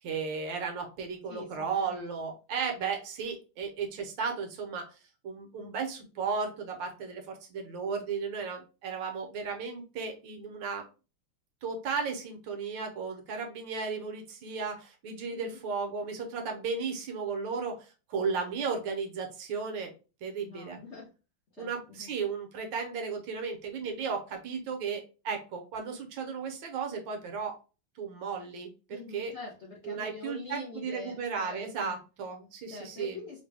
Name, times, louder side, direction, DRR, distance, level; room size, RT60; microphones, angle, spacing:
voice 1, 0.0-4.9 5.2-10.8 11.6-19.9 20.2-20.8 21.6-27.6 28.0-29.3 29.8-33.2, right 5 dB, 65° right, 4 dB, 1.3 m, -35 dB
voice 2, 1.3-2.0 15.3-15.6 20.4-21.1 21.6-22.1 28.9-32.0 32.7-33.4, left 3 dB, 65° left, -4 dB, 0.7 m, -44 dB
3.9 x 2.2 x 3.3 m, 0.33 s
omnidirectional pair, 2.3 m